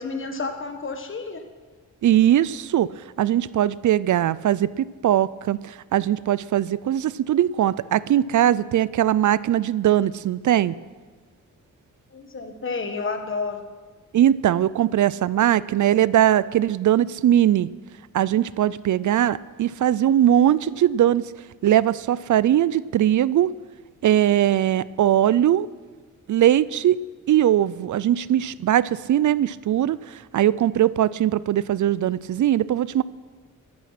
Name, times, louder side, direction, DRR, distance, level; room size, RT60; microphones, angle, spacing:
voice 1, 0.0-1.4 12.1-13.6, left 4 dB, 40° left, 6 dB, 1.5 m, -30 dB
voice 2, 2.0-2.9 3.2-10.8 14.1-17.7 18.1-21.2 21.6-23.5 24.0-25.7 26.3-27.0 27.3-33.0, right 11 dB, 65° right, 19 dB, 0.5 m, -20 dB
14.5 x 11.0 x 5.9 m, 1.4 s
cardioid pair, 90°, 32 cm